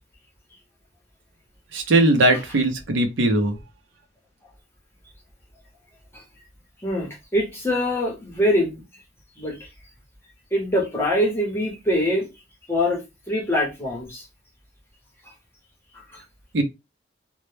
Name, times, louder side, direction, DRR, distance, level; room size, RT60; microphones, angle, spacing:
voice 1, 1.7-3.6 16.5-16.6, right 1 dB, 70° right, 0.5 m, -19 dB
voice 2, 6.8-8.8 9.4-9.7 10.5-12.3 12.7-13.0 13.3-14.3 16.1-16.2, left 1 dB, 10° left, 0.7 m, -24 dB
2.1 x 2.0 x 3.0 m
head